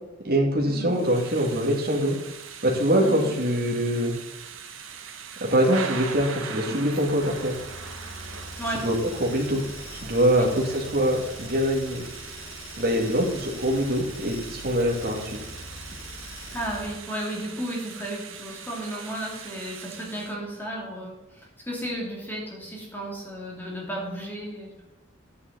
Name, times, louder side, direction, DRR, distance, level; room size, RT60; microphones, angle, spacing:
voice 1, 0.2-2.2 2.6-4.1 5.4-7.6 8.8-8.9 9.2-9.6 10.0-12.0 12.8-15.4, equal, 50° right, 0 dB, 2.2 m, -23 dB
Thunder / Rain, 0.9-20.3, right 6 dB, 85° right, 1.2 m, -41 dB
voice 2, 3.0-3.4 6.6-6.9 8.6-8.9 10.3-10.5 16.5-24.9, right 1 dB, 10° left, -3 dB, 2.8 m, -34 dB
sound 1, 6.9-17.1, left 1 dB, 70° left, 2.1 m, -43 dB
10.5 x 9.6 x 4.0 m, 1.0 s
head